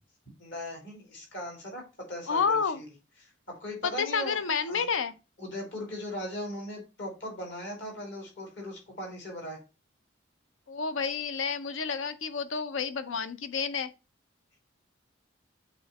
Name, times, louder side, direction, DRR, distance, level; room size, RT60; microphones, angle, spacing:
voice 1, 0.4-1.8 2.1-2.9 3.2-4.4 4.7-4.9 5.4-9.6, left 1 dB, 60° left, 2.9 m, -39 dB
voice 2, 2.3-2.8 4.0-5.1 10.7-13.9, left 5 dB, 80° left, 0.6 m, -30 dB
7.8 x 3.1 x 4.1 m
head